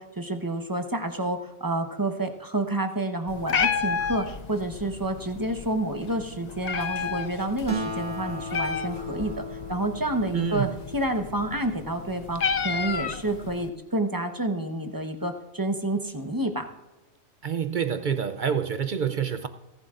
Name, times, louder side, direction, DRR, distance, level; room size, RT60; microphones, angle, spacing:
voice 1, 0.0-16.7, right 1 dB, 15° right, 5 dB, 0.9 m, -29 dB
Meow, 3.3-13.7, left 6 dB, 50° left, 0.5 m, -32 dB
Acoustic guitar, 7.7-11.4, equal, 30° right, 1.4 m, -36 dB
voice 2, 10.3-10.7 17.4-19.5, right 7 dB, 65° right, 9 dB, 0.5 m, -27 dB
29.5 x 11.5 x 2.5 m, 1.0 s
omnidirectional pair, 1.4 m